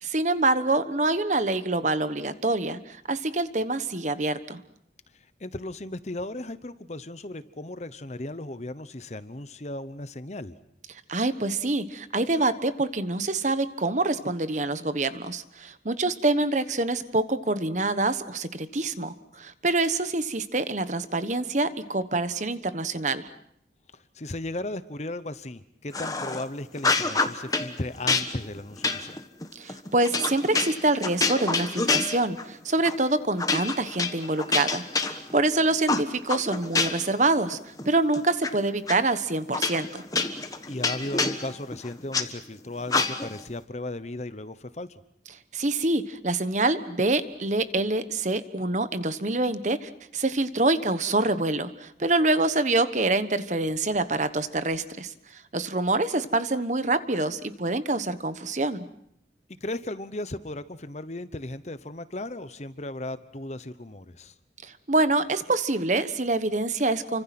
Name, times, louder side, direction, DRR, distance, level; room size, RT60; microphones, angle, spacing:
voice 1, 0.0-4.6 11.1-23.3 29.5-40.0 45.5-58.9 64.6-67.2, right 2 dB, 40° right, 12 dB, 1.2 m, -26 dB
voice 2, 5.1-10.6 23.9-29.2 40.7-45.0 59.6-64.3, left 1 dB, 40° left, 13 dB, 1.0 m, -36 dB
sound 1, 25.9-26.4 26.8-27.7 28.1-32.5 32.8-33.0 33.4-35.5 35.9-37.2 37.5-38.5 38.9-39.0 39.5-42.3 42.9-43.4, left 4 dB, 20° left, 1.4 m, -27 dB
29.5 x 25.0 x 6.0 m, 0.73 s
head